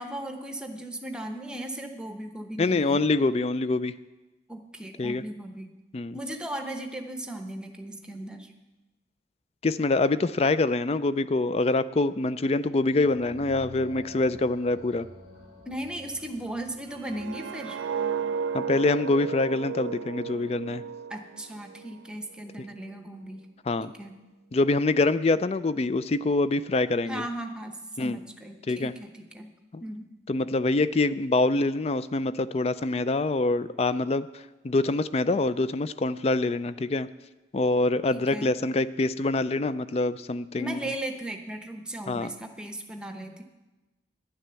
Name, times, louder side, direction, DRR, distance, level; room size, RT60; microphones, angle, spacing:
voice 1, 0.0-3.0 4.5-5.7 6.1-8.5 15.6-17.8 21.1-23.4 23.8-24.1 27.0-29.5 29.8-30.1 38.1-38.6 40.6-43.4, right 1 dB, 5° right, 4 dB, 0.9 m, -37 dB
voice 2, 2.6-4.0 5.0-5.2 5.9-6.2 9.6-15.1 18.5-20.8 23.7-23.9 24.5-27.2 28.0-28.2 28.7-28.9 29.7-29.8 30.3-37.1 37.5-40.9 42.1-42.3, left 2 dB, 35° left, 15 dB, 0.4 m, -25 dB
sound 1, 12.8-17.4, left 1 dB, 85° left, 3.4 m, -49 dB
sound 2, 16.9-21.9 22.3-22.6, right 6 dB, 90° right, 0.4 m, -33 dB
11.0 x 10.0 x 6.9 m, 1.1 s
head